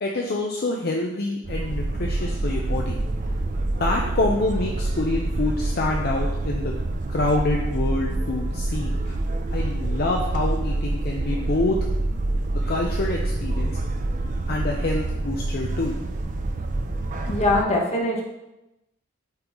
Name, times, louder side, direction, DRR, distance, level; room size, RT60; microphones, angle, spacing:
voice 1, 0.0-3.0 3.8-6.7 7.1-9.2 9.5-11.8 12.7-13.8 14.5-16.0, left 2 dB, 50° left, 0 dB, 0.5 m, -26 dB
sound 1, 1.4-17.6, right 2 dB, 40° right, 0.4 m, -26 dB
voice 2, 17.3-18.2, left 2 dB, 30° left, -1 dB, 1.0 m, -22 dB
8.7 x 3.8 x 3.0 m, 0.94 s
head